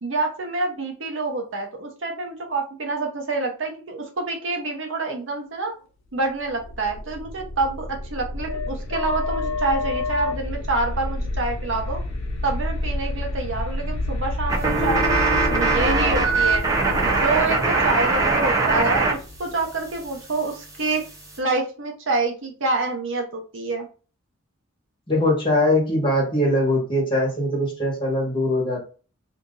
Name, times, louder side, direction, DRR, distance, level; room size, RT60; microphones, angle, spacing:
voice 1, 0.0-5.7 6.1-12.0 12.4-16.6 17.0-21.0 21.4-23.9, right 3 dB, 70° right, 2 dB, 0.9 m, -27 dB
sound 1, 6.4-20.1, left 2 dB, 75° left, 0.7 m, -29 dB
sound 2, 14.5-19.1 19.4-21.4, right 3 dB, 15° right, 0.6 m, -22 dB
voice 2, 25.1-28.8, left 1 dB, 25° left, -2 dB, 1.3 m, -21 dB
2.8 x 2.6 x 3.8 m, 0.36 s
head